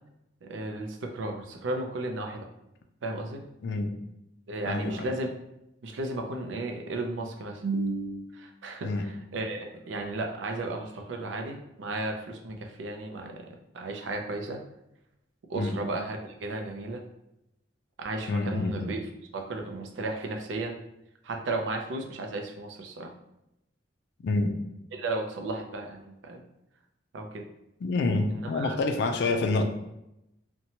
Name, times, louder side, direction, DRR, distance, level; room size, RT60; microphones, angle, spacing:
voice 1, 0.4-2.5 3.0-3.4 4.5-5.3 5.8-13.5 13.7-14.6 15.5-17.0 18.0-19.0 19.3-20.8 21.2-23.1 24.9-26.4 27.1-27.4 28.3-28.8, right 2 dB, 70° right, 3 dB, 0.4 m, -34 dB
voice 2, 3.6-3.9 4.7-5.1 8.8-9.1 15.5-15.8 18.3-18.9 24.2-24.5 27.8-29.6, left 3 dB, 60° left, 5 dB, 0.3 m, -27 dB
2.8 x 2.1 x 2.7 m, 0.86 s
head